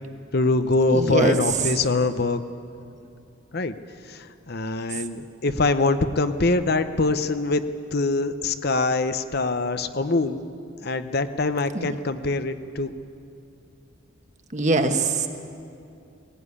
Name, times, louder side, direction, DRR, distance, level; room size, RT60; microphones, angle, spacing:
voice 1, 0.3-2.4 3.5-3.7 4.1-7.6 7.9-10.5 10.8-12.9, left 3 dB, 50° left, 10 dB, 0.8 m, -23 dB
voice 2, 0.9-1.7 11.7-11.9 14.5-15.3, right 3 dB, 35° right, 6 dB, 1.3 m, -23 dB
19.5 x 16.5 x 9.8 m, 2.5 s
head